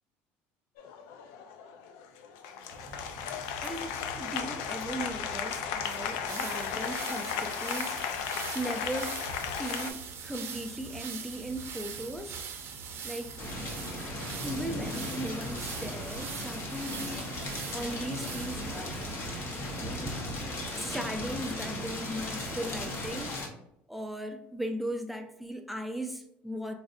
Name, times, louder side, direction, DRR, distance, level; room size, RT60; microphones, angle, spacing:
Applause, 0.8-9.9, left 7 dB, 85° left, 0.4 m, -35 dB
sound 1, 2.7-20.5, right 5 dB, 45° right, 0.6 m, -42 dB
voice 1, 3.6-9.3 9.5-12.4 13.0-13.3 14.4-17.3 17.7-19.0 19.8-20.3 20.8-23.3 23.9-26.7, right 1 dB, ahead, 4 dB, 0.4 m, -38 dB
sound 2, 13.4-23.5, left 1 dB, 45° left, 1.0 m, -37 dB
4.0 x 2.4 x 2.5 m, 0.79 s
cardioid pair, 115°, 5 cm